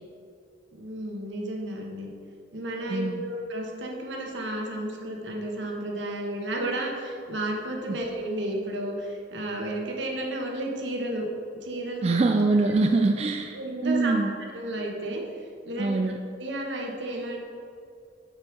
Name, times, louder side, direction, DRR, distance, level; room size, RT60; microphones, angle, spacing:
voice 1, 0.7-2.1 2.5-11.3 11.6-12.2 13.5-14.2 14.5-15.2 15.6-16.0 16.4-17.4, right 1 dB, 75° right, 0 dB, 1.3 m, -32 dB
voice 2, 2.9-3.2 7.9-8.0 12.0-13.6 13.8-14.4 15.8-16.2, right 3 dB, 35° right, 4 dB, 0.3 m, -24 dB
6.8 x 5.5 x 6.1 m, 2.4 s
head